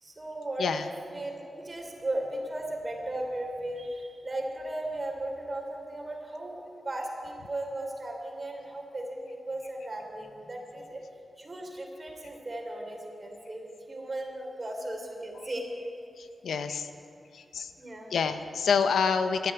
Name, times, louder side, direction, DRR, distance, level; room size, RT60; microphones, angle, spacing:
voice 1, 0.0-11.0 11.4-15.6 17.8-18.1, right 1 dB, 35° right, 1 dB, 3.2 m, -36 dB
voice 2, 0.6-0.9 16.2-16.9 17.3-17.7 18.1-19.5, left 5 dB, 90° left, 9 dB, 0.7 m, -27 dB
12.5 x 9.3 x 9.0 m, 2.5 s
cardioid pair, 60°, 0 cm